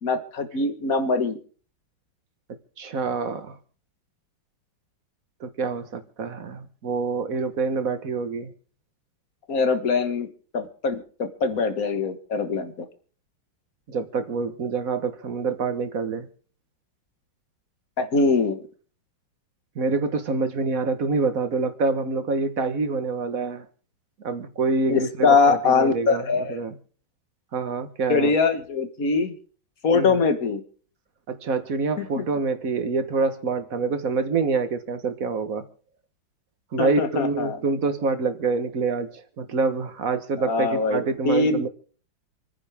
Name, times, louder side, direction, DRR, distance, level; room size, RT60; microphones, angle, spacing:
voice 1, 0.0-1.4 9.5-10.3 10.5-12.9 18.0-18.6 24.9-26.6 28.1-29.3 29.8-30.6 32.0-32.2 36.8-37.6 40.4-41.7, left 4 dB, 45° left, 8 dB, 1.8 m, -23 dB
voice 2, 2.8-3.6 5.4-8.5 13.9-16.3 19.7-23.7 24.2-26.2 26.5-26.7 27.5-28.3 29.9-30.1 31.3-35.6 36.7-41.7, right 4 dB, 45° right, 10 dB, 1.6 m, -26 dB
28.0 x 9.9 x 3.6 m, 0.42 s
omnidirectional pair, 2.2 m